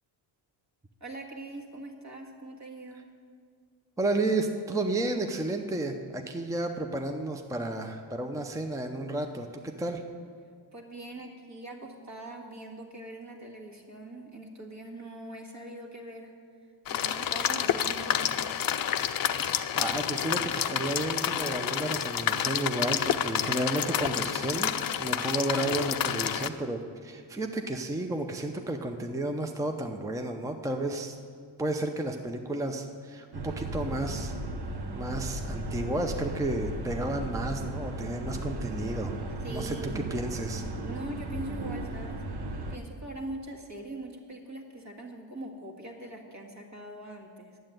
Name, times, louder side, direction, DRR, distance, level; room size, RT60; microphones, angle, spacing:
voice 1, 1.0-3.1 10.7-16.3 16.9-18.7 39.4-40.2 40.8-42.2 42.7-47.6, right 1 dB, 35° right, 0 dB, 1.8 m, -42 dB
voice 2, 4.0-10.0 19.7-31.2 31.6-34.3 34.9-39.2 39.5-40.6, right 2 dB, 5° right, 5 dB, 0.6 m, -32 dB
sound 1, 16.9-26.5, left 9 dB, 45° left, 0.6 m, -29 dB
sound 2, 33.3-42.8, right 1 dB, 55° right, 1.1 m, -36 dB
10.5 x 7.8 x 9.0 m, 2.1 s
cardioid pair, 110°, 47 cm